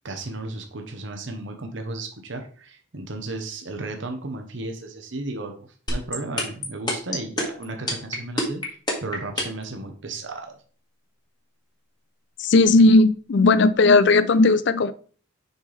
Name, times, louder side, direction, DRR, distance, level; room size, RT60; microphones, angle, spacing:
voice 1, 0.0-8.6 9.0-10.6, right 2 dB, 65° right, 4 dB, 1.0 m, -34 dB
sound 1, 5.9-9.7, left 1 dB, 20° left, 1.7 m, -25 dB
voice 2, 12.4-14.9, left 3 dB, 60° left, 14 dB, 0.5 m, -16 dB
6.4 x 5.5 x 3.3 m, 0.42 s
head